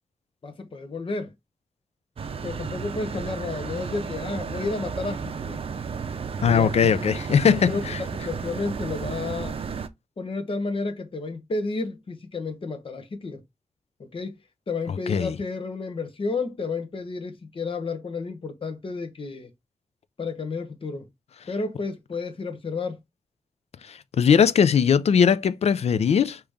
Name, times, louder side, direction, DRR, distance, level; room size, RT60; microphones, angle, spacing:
voice 1, 0.4-1.3 2.4-5.6 6.4-9.6 10.2-13.4 14.0-14.4 14.7-19.5 20.2-21.1 21.5-23.0, left 3 dB, 50° left, 1.0 m, -31 dB
sound 1, 2.2-9.9, right 6 dB, 55° right, 0.5 m, -33 dB
voice 2, 6.4-8.0 15.1-15.4 23.9-26.4, left 7 dB, 70° left, 0.4 m, -20 dB
5.0 x 2.9 x 3.5 m
wide cardioid pair, 120°, 11 cm